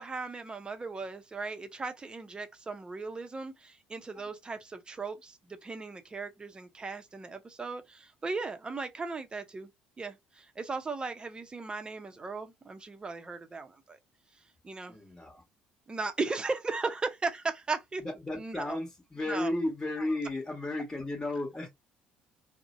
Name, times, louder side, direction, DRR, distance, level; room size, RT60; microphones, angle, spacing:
voice 1, 0.0-9.7 10.0-14.0 14.6-15.0 15.9-18.0 18.4-18.8 19.3-19.5, right 3 dB, 25° right, 0.7 m, -37 dB
voice 2, 14.9-15.4 18.0-21.7, left 2 dB, 15° left, 1.2 m, -34 dB
2.6 x 2.1 x 2.6 m
supercardioid pair, 70°, 4 cm